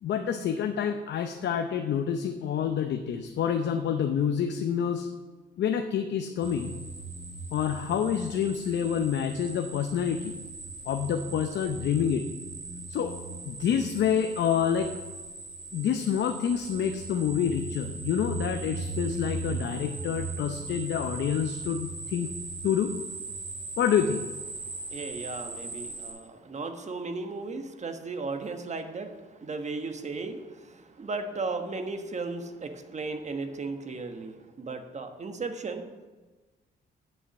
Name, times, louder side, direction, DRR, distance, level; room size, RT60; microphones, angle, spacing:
voice 1, 0.0-5.1 5.6-6.7 7.5-10.4 10.9-12.3 12.9-13.1 13.4-14.9 15.7-22.3 22.6-22.9 23.8-24.2, left 8 dB, 65° left, 5 dB, 0.7 m, -28 dB
sound 1, 6.4-26.1, right 3 dB, 70° right, 3.7 m, -39 dB
voice 2, 24.9-35.8, right 3 dB, 35° right, 7 dB, 1.2 m, -36 dB
9.3 x 5.7 x 7.1 m, 1.3 s
cardioid pair, 90°, 20 cm